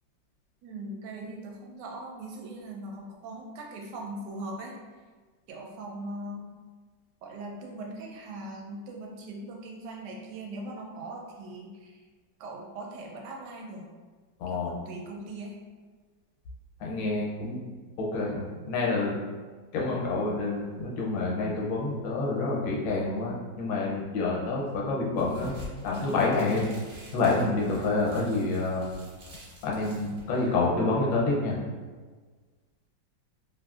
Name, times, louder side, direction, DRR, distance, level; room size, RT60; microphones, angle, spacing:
voice 1, 0.6-4.7 5.5-6.5 7.2-12.1 12.4-13.9 14.5-15.5, right 2 dB, 75° right, -1 dB, 1.2 m, -40 dB
voice 2, 14.4-14.7 16.8-17.6 18.0-19.2 19.7-25.5 25.8-26.6 27.1-28.8 29.6-31.5, left 3 dB, 85° left, -3 dB, 1.4 m, -28 dB
sound 1, 25.2-30.7, left 1 dB, 55° right, 0.7 m, -47 dB
3.1 x 2.6 x 2.3 m, 1.4 s
omnidirectional pair, 2.0 m